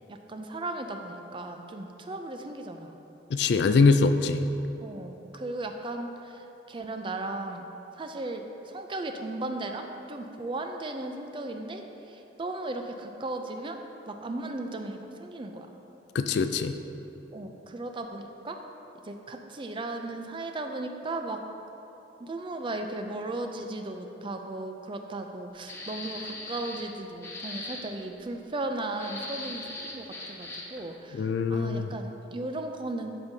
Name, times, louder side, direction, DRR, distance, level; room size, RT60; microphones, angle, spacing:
voice 1, 0.1-3.0 4.8-7.7 8.0-13.8 14.1-15.7 17.3-18.6 19.0-21.4 22.2-33.1, right 2 dB, 25° right, 5 dB, 0.4 m, -36 dB
voice 2, 3.3-4.5 16.1-16.8 31.1-31.9, left 4 dB, 60° left, 9 dB, 0.3 m, -23 dB
sound 1, 25.7-26.9 27.2-27.8 28.9-30.8, left 2 dB, 15° left, 0.8 m, -39 dB
12.5 x 5.2 x 2.8 m, 3.0 s
head